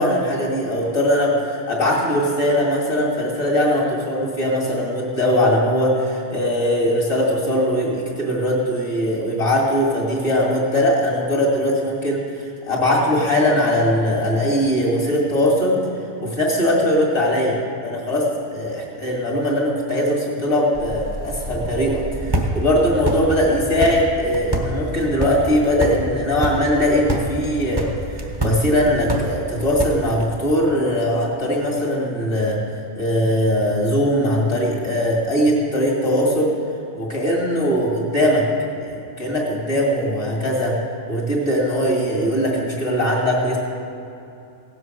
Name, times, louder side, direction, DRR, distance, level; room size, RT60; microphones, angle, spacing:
voice 1, 0.0-15.8 16.2-27.9 28.1-32.6 33.0-36.5 37.0-38.4 38.8-40.8 41.1-43.6, equal, 55° left, -4 dB, 2.6 m, -20 dB
sound 1, 20.7-30.3, right 1 dB, 20° right, 1.0 m, -27 dB
16.5 x 8.1 x 6.3 m, 2.7 s
omnidirectional pair, 1.4 m